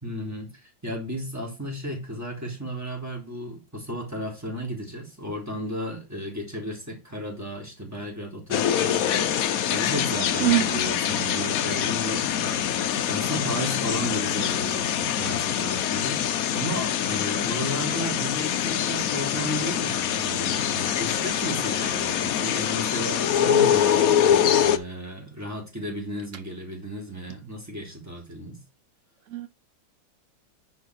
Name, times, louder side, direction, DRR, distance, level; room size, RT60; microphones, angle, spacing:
voice 1, 0.0-28.6, equal, 10° right, 3.4 m, -34 dB
sound 1, 8.5-24.8, left 9 dB, 65° left, 0.9 m, -24 dB
voice 2, 10.4-10.8 29.3-29.5, right 14 dB, 80° right, 0.6 m, -22 dB
10.0 x 4.8 x 4.7 m
omnidirectional pair, 2.2 m